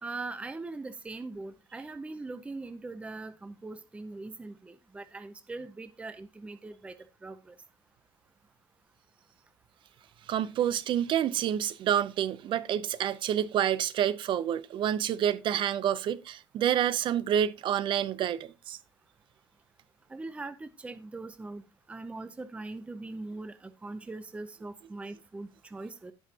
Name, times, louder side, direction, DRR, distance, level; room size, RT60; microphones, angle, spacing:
voice 1, 0.0-7.0 7.2-7.5 20.1-21.6 21.9-26.1, right 3 dB, 10° right, 0.6 m, -41 dB
voice 2, 10.3-18.8, right 10 dB, 55° right, 0.7 m, -28 dB
16.5 x 5.7 x 2.9 m
cardioid pair, 145°, 10 cm